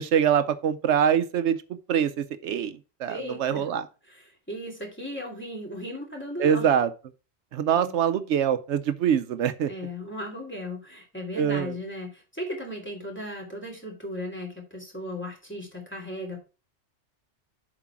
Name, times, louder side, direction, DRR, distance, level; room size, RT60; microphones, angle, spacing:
voice 1, 0.0-1.6 1.9-3.8 6.4-6.9 7.5-9.7 11.3-11.7, right 8 dB, 80° right, 0.9 m, -24 dB
voice 2, 3.1-3.7 4.1-6.7 7.7-7.9 9.7-16.4, left 1 dB, 10° left, 2.8 m, -36 dB
7.5 x 4.9 x 5.9 m
omnidirectional pair, 1.2 m